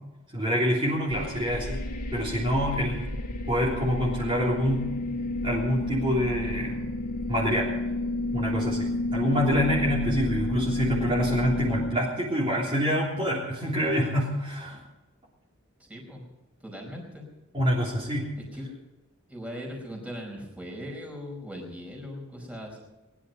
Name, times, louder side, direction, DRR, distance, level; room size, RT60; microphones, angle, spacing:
voice 1, 0.3-1.8 2.1-3.1 3.5-4.8 5.4-6.9 7.3-7.7 8.3-14.8 17.5-18.3, equal, 25° right, -6 dB, 3.5 m, -26 dB
sound 1, 1.1-11.9, left 1 dB, 40° left, 2.2 m, -30 dB
voice 2, 15.8-16.2 16.6-17.2 18.4-18.7 19.3-22.8, equal, 5° right, -1 dB, 4.7 m, -39 dB
21.0 x 11.0 x 5.3 m, 1.1 s
head